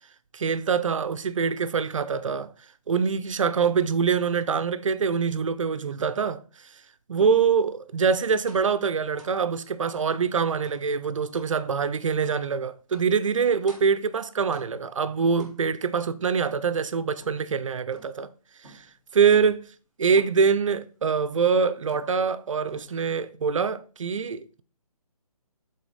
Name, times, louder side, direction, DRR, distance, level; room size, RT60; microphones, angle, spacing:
voice 1, 0.3-2.5 2.9-6.7 7.1-18.3 18.6-18.9 19.1-19.7 20.0-24.6, right 6 dB, 55° right, 0.5 m, -24 dB
sound 1, 8.5-8.8 9.2-9.4 10.0-10.2 10.6-10.9 11.3-11.6 12.2-12.4 12.9-13.2 13.7-14.0 14.5-14.9 15.4-15.9 16.4-17.5 17.9-18.3 18.6-19.0 19.3-19.7 20.2-20.5 21.1-21.4 21.9-22.4 22.7-23.2, right 2 dB, ahead, 0.5 m, -52 dB
8.1 x 3.9 x 4.0 m
hypercardioid pair, 165°, 19 cm